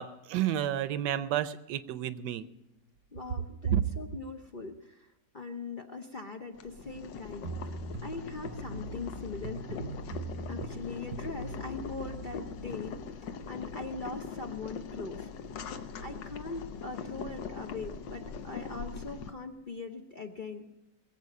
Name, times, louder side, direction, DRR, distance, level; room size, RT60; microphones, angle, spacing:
voice 1, 0.0-2.4 3.7-3.8, right 11 dB, 75° right, 14 dB, 1.3 m, -30 dB
voice 2, 3.1-7.8 8.0-13.0 13.2-15.3 16.0-20.7, left 3 dB, 45° left, 4 dB, 0.6 m, -41 dB
Boiling, 6.5-19.3, left 5 dB, 80° left, 1.5 m, -41 dB
sound 1, 7.4-12.8, right 3 dB, 35° right, 0.8 m, -41 dB
22.0 x 7.7 x 6.5 m, 0.92 s
omnidirectional pair, 1.9 m